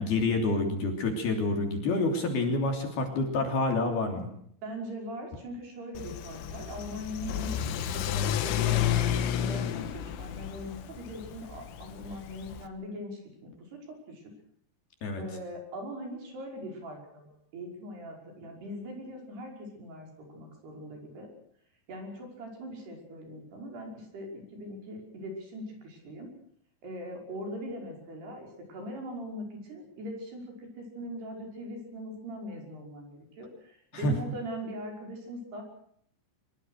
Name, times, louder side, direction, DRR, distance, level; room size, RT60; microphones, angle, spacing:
voice 1, 0.0-4.3 15.0-15.2 33.9-34.1, left 2 dB, 50° left, 4 dB, 4.7 m, -28 dB
voice 2, 4.6-7.6 7.9-8.9 9.2-14.2 15.1-21.3 21.9-26.3 26.8-35.6, equal, 50° right, 2 dB, 7.4 m, -41 dB
Car / Accelerating revving vroom, 6.0-12.7, left 10 dB, 75° left, 4.0 m, -31 dB
24.0 x 23.0 x 6.5 m, 0.66 s
omnidirectional pair, 6.0 m